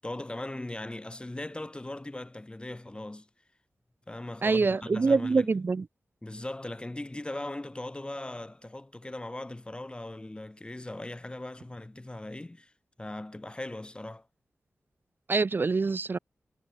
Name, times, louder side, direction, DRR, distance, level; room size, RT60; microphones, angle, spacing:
voice 1, 0.0-3.3 4.1-5.5 6.2-12.7 13.0-14.3, left 1 dB, 20° left, 1.4 m, -39 dB
voice 2, 4.4-5.9 15.3-16.2, right 4 dB, 45° right, 0.5 m, -25 dB
cardioid pair, 65°, 5 cm